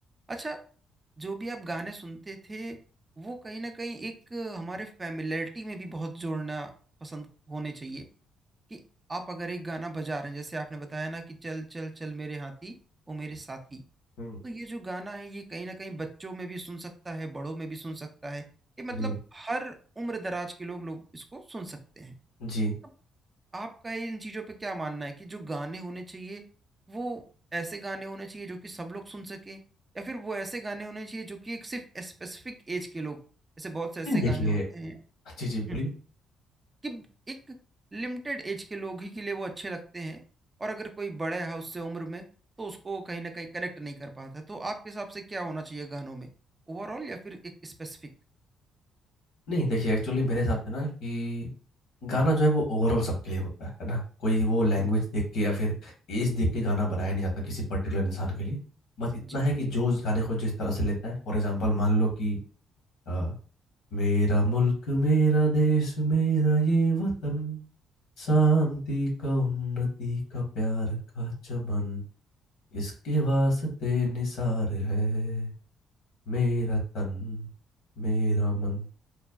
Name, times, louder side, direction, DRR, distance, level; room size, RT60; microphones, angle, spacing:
voice 1, 0.3-0.6 1.2-2.8 3.2-6.7 7.0-8.1 8.7-8.8 9.1-12.7 13.1-13.8 14.4-18.4 18.8-22.2 23.5-26.4 26.9-27.2 27.5-29.6 29.9-33.2 33.6-35.0 35.7-35.8 36.8-37.6 37.9-40.2 40.6-42.2 42.6-46.3 46.7-48.0 54.8-54.9 59.2-59.4, right 2 dB, 25° right, 5 dB, 0.4 m, -36 dB
voice 2, 22.4-22.7 34.0-34.6 35.4-35.9 49.5-51.5 52.0-58.6 59.0-62.4 63.1-63.3 63.9-67.6 68.2-72.0 72.7-75.5 76.3-77.5 78.0-78.8, right 1 dB, 80° left, -1 dB, 1.2 m, -27 dB
3.2 x 2.1 x 2.3 m, 0.40 s
cardioid pair, 90°, 0 cm